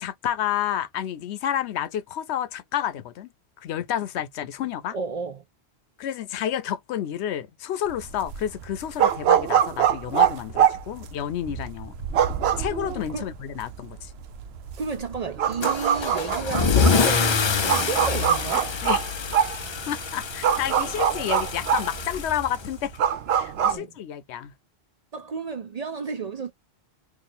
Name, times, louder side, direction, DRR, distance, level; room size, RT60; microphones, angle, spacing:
voice 1, 0.0-3.3 3.6-5.0 6.0-11.9 12.6-14.1 15.6-15.7 18.8-19.0 19.9-22.9 23.3-24.5, left 10 dB, 90° left, 0.9 m, -30 dB
voice 2, 4.9-5.4 13.1-13.3 14.8-18.8 23.7-23.9 25.1-26.5, right 5 dB, 50° right, 0.5 m, -32 dB
sound 1, 7.9-23.8, right 9 dB, 75° right, 0.8 m, -24 dB
Car / Engine starting / Accelerating revving vroom, 15.6-23.0, left 5 dB, 40° left, 0.4 m, -26 dB
2.9 x 2.5 x 4.0 m
omnidirectional pair, 1.1 m